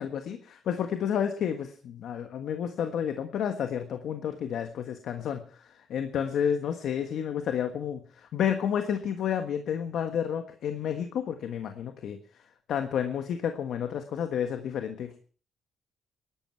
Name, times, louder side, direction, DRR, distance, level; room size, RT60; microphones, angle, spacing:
voice 1, 0.0-12.2 12.7-15.2, left 8 dB, 70° left, 6 dB, 1.4 m, -31 dB
19.0 x 12.0 x 4.6 m, 0.43 s
cardioid pair, 90°, 0 cm